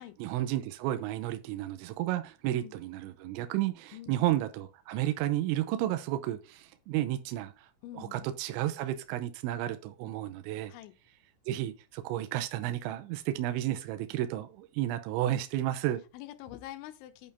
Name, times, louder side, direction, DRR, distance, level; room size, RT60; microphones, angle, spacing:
voice 1, 0.0-7.7 7.9-10.7 11.5-16.0, right 13 dB, 85° right, 2.9 m, -32 dB
voice 2, 2.5-2.8 3.9-4.3 7.8-8.3 10.7-10.9 16.1-17.3, left 13 dB, 85° left, 3.0 m, -45 dB
8.7 x 3.4 x 5.5 m
omnidirectional pair, 5.7 m